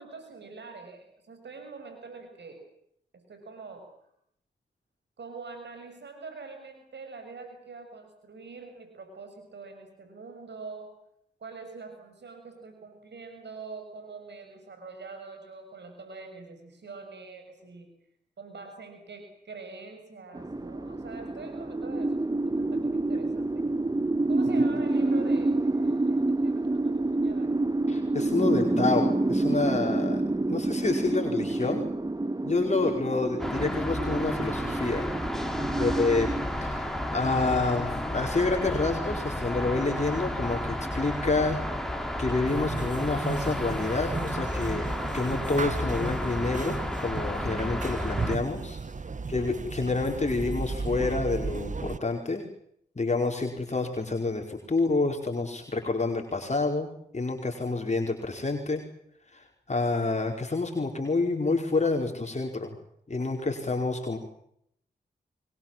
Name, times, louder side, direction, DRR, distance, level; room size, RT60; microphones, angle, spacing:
voice 1, 0.0-2.6 3.1-3.9 5.2-10.9 11.4-17.9 18.4-23.7 24.3-27.6 35.6-36.0 49.1-49.5 63.6-63.8, right 4 dB, 70° right, 6 dB, 6.6 m, -44 dB
sound 1, 20.3-36.5, right 2 dB, 20° right, 1.2 m, -28 dB
voice 2, 27.9-30.2 30.5-31.8 32.4-35.1 35.8-36.3 36.6-44.9 45.1-48.8 49.3-52.5 52.9-58.8 59.3-62.8 63.1-64.2, left 3 dB, 40° left, 2 dB, 4.8 m, -28 dB
sound 2, 33.4-48.4, left 1 dB, ahead, 5.5 m, -32 dB
sound 3, 42.5-52.0, right 4 dB, 40° right, 1.1 m, -35 dB
29.5 x 22.5 x 7.6 m, 0.71 s
cardioid pair, 45°, 18 cm